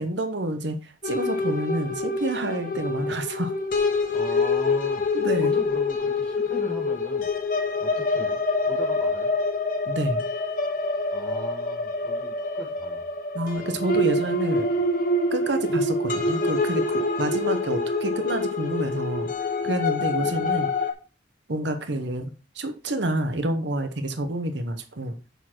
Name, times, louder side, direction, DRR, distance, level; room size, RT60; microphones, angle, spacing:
voice 1, 0.0-3.5 5.1-5.6 9.9-10.3 13.3-14.7 15.3-19.3 19.6-20.7 21.5-25.2, right 1 dB, 65° right, 7 dB, 0.9 m, -28 dB
sound 1, 1.0-20.9, left 2 dB, 45° left, 1.0 m, -26 dB
voice 2, 4.1-5.0 5.4-7.3 7.8-8.4 8.7-9.3 11.1-13.1 14.5-14.7 20.2-20.6, equal, 5° left, 0 dB, 2.0 m, -39 dB
7.0 x 4.5 x 5.9 m, 0.34 s
head